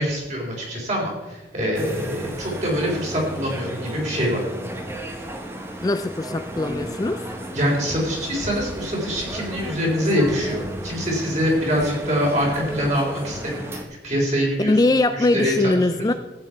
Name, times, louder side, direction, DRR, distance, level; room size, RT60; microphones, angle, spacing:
voice 1, 0.0-4.4 7.5-16.1, equal, 40° right, -2 dB, 3.9 m, -24 dB
sound 1, 1.8-13.8, right 1 dB, 15° right, 1.0 m, -34 dB
voice 2, 5.8-7.2 14.6-16.1, left 2 dB, 20° left, 10 dB, 0.3 m, -21 dB
15.0 x 8.9 x 4.6 m, 1.1 s
head